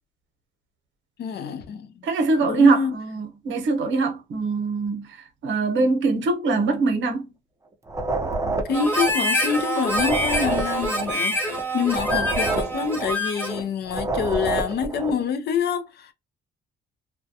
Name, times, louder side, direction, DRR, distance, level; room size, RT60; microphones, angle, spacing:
voice 1, 1.2-2.1 2.4-3.0 8.7-16.1, left 7 dB, 55° left, 0.5 m, -26 dB
voice 2, 2.0-5.1 5.4-7.3, right 3 dB, 75° right, 0.8 m, -22 dB
sound 1, 7.9-9.6 9.9-13.6 13.9-15.2, right 2 dB, 15° right, 0.6 m, -28 dB
Harmonica, 8.7-13.6, equal, 10° left, 1.1 m, -26 dB
2.2 x 2.1 x 2.7 m
cardioid pair, 90°, 20 cm